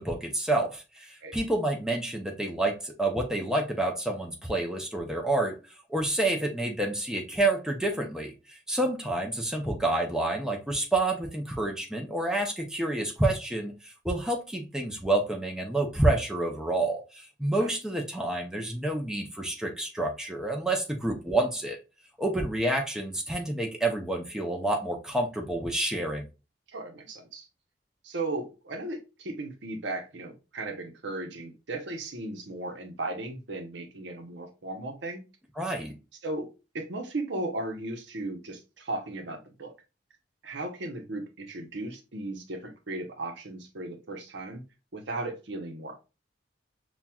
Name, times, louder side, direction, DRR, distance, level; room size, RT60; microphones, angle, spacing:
voice 1, 0.0-5.6 5.9-21.8 22.2-26.3 35.6-35.9, right 2 dB, 5° right, 0.6 m, -28 dB
voice 2, 26.7-27.5 28.0-35.2 36.2-36.5 36.7-39.7 40.4-44.6 44.9-45.9, right 2 dB, 80° right, 0.8 m, -36 dB
5.7 x 2.3 x 2.2 m
head